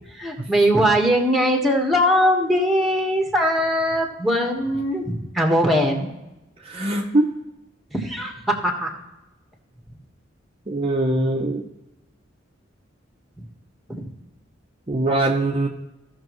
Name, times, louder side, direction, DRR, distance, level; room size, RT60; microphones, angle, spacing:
voice 1, 0.2-6.1 7.9-8.9 13.9-14.0, equal, ahead, 1 dB, 1.4 m, -20 dB
voice 2, 6.6-7.3 10.7-11.7 14.9-15.7, right 2 dB, 30° right, 0 dB, 0.7 m, -22 dB
15.5 x 6.2 x 3.1 m, 0.98 s
head